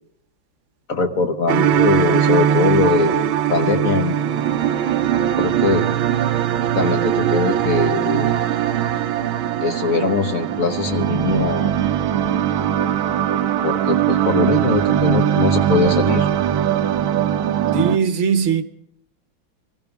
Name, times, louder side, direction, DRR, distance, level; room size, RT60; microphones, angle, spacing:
voice 1, 0.9-4.1 5.4-5.9 6.7-8.3 9.6-11.7 13.6-16.3, left 4 dB, 50° left, 1.2 m, -21 dB
sound 1, 1.5-18.0, right 10 dB, 80° right, 1.5 m, -20 dB
voice 2, 17.7-18.6, right 6 dB, 45° right, 1.1 m, -19 dB
24.0 x 15.5 x 3.5 m
omnidirectional pair, 2.2 m